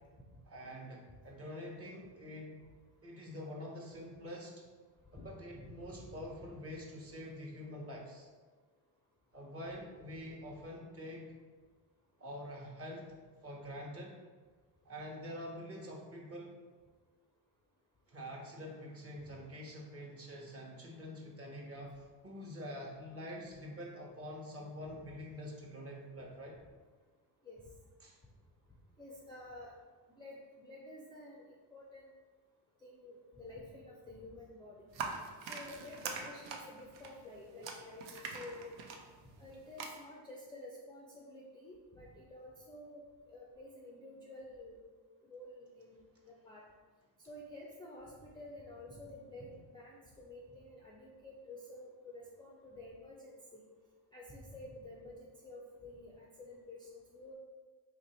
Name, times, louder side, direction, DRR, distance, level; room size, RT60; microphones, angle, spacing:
voice 1, 0.5-2.6 3.0-4.5 5.1-8.3 9.3-11.3 12.2-13.1 13.4-14.2 14.8-16.6 18.1-26.6 28.0-28.2, equal, 30° right, -1 dB, 1.0 m, -46 dB
voice 2, 29.0-29.7 30.2-31.4 31.7-32.0 32.8-35.1 35.5-38.7 39.2-43.0 43.3-44.8 45.2-46.0 46.3-46.6 47.3-53.6 54.1-57.3, left 2 dB, 10° left, -4 dB, 0.5 m, -51 dB
sound 1, 34.9-39.9, right 5 dB, 65° right, 0.7 m, -44 dB
3.0 x 2.6 x 4.3 m, 1.4 s
supercardioid pair, 80°, 48 cm